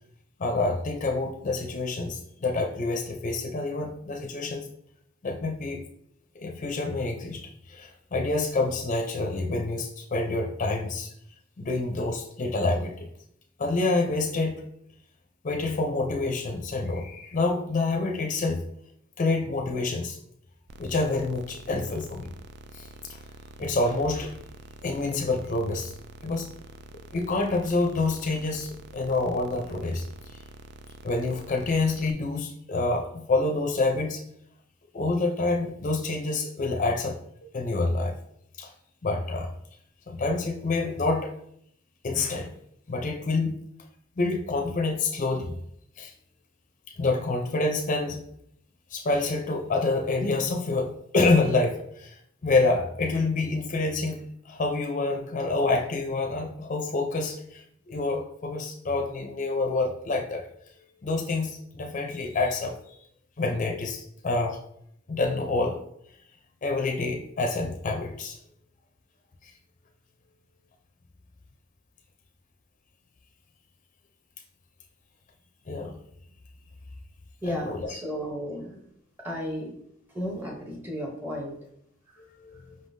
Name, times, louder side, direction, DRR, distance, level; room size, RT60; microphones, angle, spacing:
voice 1, 0.4-4.7 5.2-5.8 6.3-7.4 7.7-11.1 11.6-13.1 13.6-14.6 15.4-18.6 19.2-20.2 20.8-22.3 22.7-23.2 23.6-24.4 24.8-25.9 26.2-26.5 27.1-30.1 30.3-30.4 31.0-34.2 34.9-38.1 38.6-38.7 39.0-39.5 40.1-41.3 42.0-42.5 42.9-43.5 44.2-45.6 46.0-46.1 47.0-48.2 48.9-60.7 61.0-62.7 63.4-64.6 65.1-65.8 66.6-68.4 69.4-69.5 75.7-76.0 77.4-77.9 82.2-82.8, left 3 dB, 40° left, 2 dB, 0.5 m, -27 dB
sound 1, 20.7-32.1, right 2 dB, 60° right, 0.4 m, -47 dB
voice 2, 77.4-78.9 79.2-79.7 80.1-81.6, equal, 10° right, 0 dB, 0.7 m, -34 dB
5.2 x 3.6 x 2.6 m, 0.71 s
head